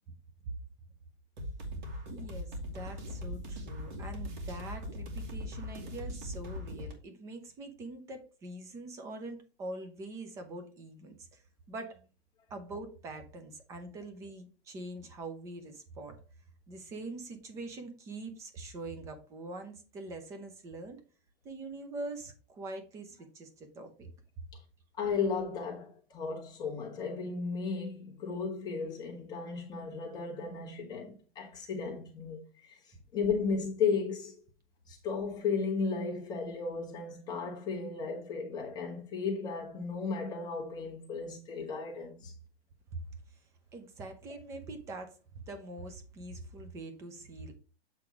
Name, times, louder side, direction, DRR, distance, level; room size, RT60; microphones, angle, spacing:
sound 1, 1.4-6.9, left 1 dB, 45° right, 2.2 m, -40 dB
voice 1, 2.1-11.4 11.7-12.0 12.5-16.2 16.7-21.0 21.4-24.1 42.9-43.0 43.7-45.2 45.5-47.5, right 2 dB, 10° right, 0.5 m, -44 dB
voice 2, 25.0-34.4 34.9-42.3, left 5 dB, 15° left, 1.4 m, -35 dB
7.9 x 3.6 x 4.6 m
hypercardioid pair, 165°, 31 cm